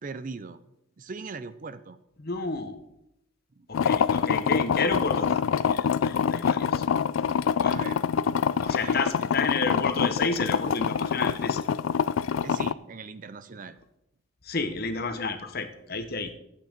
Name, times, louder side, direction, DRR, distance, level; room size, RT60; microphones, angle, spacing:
voice 1, 0.0-0.6 1.0-2.0 3.6-3.7 7.6-8.0 8.7-9.1 12.4-13.8, right 4 dB, 40° right, 13 dB, 0.5 m, -40 dB
voice 2, 2.2-2.8 3.7-5.4 5.7-6.8 7.5-7.7 8.6-11.6 14.4-16.3, left 4 dB, 50° left, 8 dB, 1.1 m, -31 dB
sound 1, 3.7-12.7, left 7 dB, 75° left, 0.3 m, -25 dB
12.0 x 8.6 x 5.2 m, 0.84 s
head